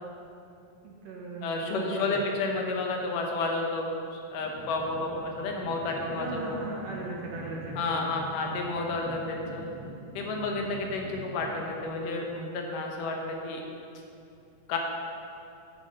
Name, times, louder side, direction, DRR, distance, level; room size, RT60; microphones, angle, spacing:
voice 1, 0.8-2.2 6.1-8.3, right 3 dB, 60° right, -3 dB, 2.0 m, -38 dB
voice 2, 1.4-6.6 7.8-9.7 10.2-13.6 14.7-14.8, left 3 dB, 80° left, 1 dB, 2.6 m, -31 dB
sound 1, 4.4-11.6, right 1 dB, 45° right, 2.1 m, -44 dB
10.0 x 6.8 x 5.4 m, 2.7 s
omnidirectional pair, 3.7 m